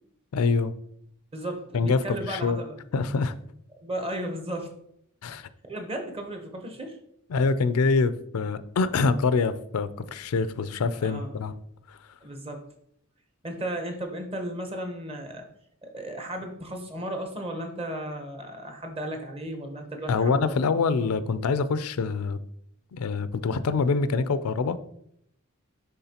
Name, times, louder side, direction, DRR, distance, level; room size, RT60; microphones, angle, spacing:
voice 1, 0.3-0.7 1.7-2.6 2.9-3.3 5.2-5.5 7.3-11.5 11.9-12.0 20.1-22.4 22.9-24.8, left 4 dB, 85° left, 13 dB, 0.4 m, -25 dB
voice 2, 1.3-2.8 3.8-4.7 5.3-5.4 5.6-7.0 11.0-11.3 12.2-12.6 13.4-15.4 15.8-20.6, right 1 dB, 25° right, 5 dB, 0.8 m, -35 dB
9.5 x 3.6 x 2.8 m, 0.73 s
head